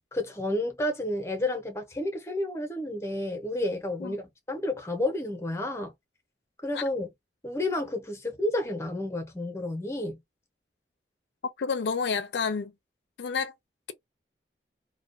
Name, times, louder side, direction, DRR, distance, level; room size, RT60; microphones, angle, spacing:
voice 1, 0.1-5.9 6.6-7.1 7.4-10.2, left 1 dB, 15° left, 0.6 m, -31 dB
voice 2, 11.6-12.7 13.2-13.5, left 5 dB, 75° left, 0.4 m, -29 dB
2.3 x 2.1 x 2.5 m
head